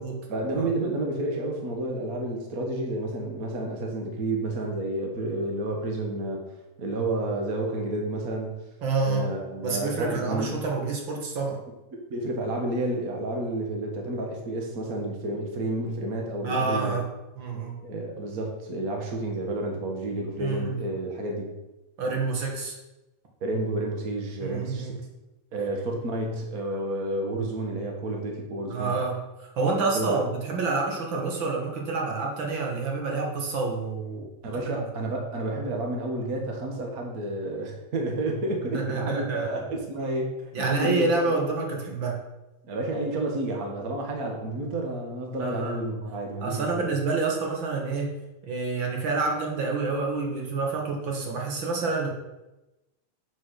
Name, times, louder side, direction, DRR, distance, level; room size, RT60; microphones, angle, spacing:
voice 1, 0.3-8.6 9.0-10.5 11.9-17.0 17.8-21.5 23.4-24.9 25.5-29.0 29.9-30.2 34.4-41.1 42.7-46.9, right 2 dB, 80° right, 1 dB, 0.7 m, -30 dB
voice 2, 8.8-9.3 9.6-11.6 16.4-17.1 17.4-17.8 20.4-20.7 22.0-22.7 24.4-24.9 28.7-29.2 29.5-34.3 34.6-34.8 38.7-39.5 40.5-42.2 45.4-45.8 46.4-48.1 48.4-52.1, right 3 dB, 50° right, 1 dB, 1.5 m, -28 dB
7.7 x 6.1 x 6.2 m, 1.0 s
omnidirectional pair, 4.0 m